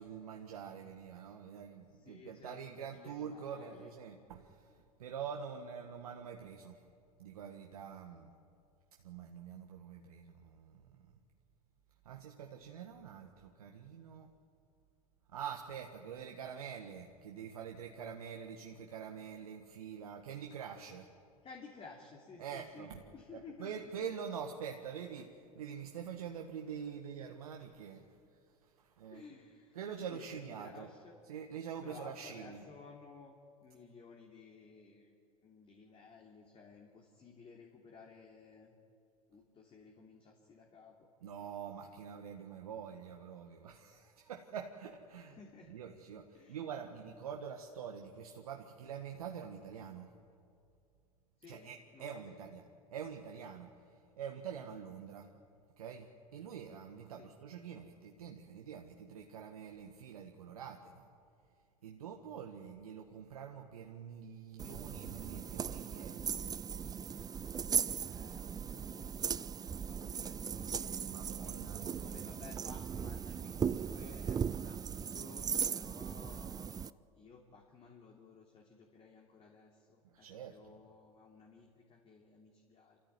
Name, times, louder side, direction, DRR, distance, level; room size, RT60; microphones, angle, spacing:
voice 1, 0.0-6.8 7.2-8.3 9.0-11.2 12.0-14.3 15.3-21.1 22.4-23.1 23.3-28.2 28.6-29.3 29.7-30.9 31.2-32.6 41.2-45.4 45.6-50.1 51.5-55.3 55.8-61.1 61.8-66.4 71.1-72.3 80.0-80.8, right 7 dB, 80° right, 3 dB, 1.5 m, -46 dB
voice 2, 1.9-3.9 21.4-23.9 29.1-29.8 30.1-31.2 31.8-35.2 35.4-38.8 39.3-41.1 45.1-45.7 46.3-46.6 51.4-52.4 57.2-57.3 68.0-70.9 71.7-76.7 77.1-83.0, left 4 dB, 30° left, 1 dB, 2.9 m, -56 dB
sound 1, 64.6-76.9, right 7 dB, 20° right, 0.5 m, -38 dB
27.5 x 14.5 x 9.6 m, 2.4 s
hypercardioid pair, 85°, 19 cm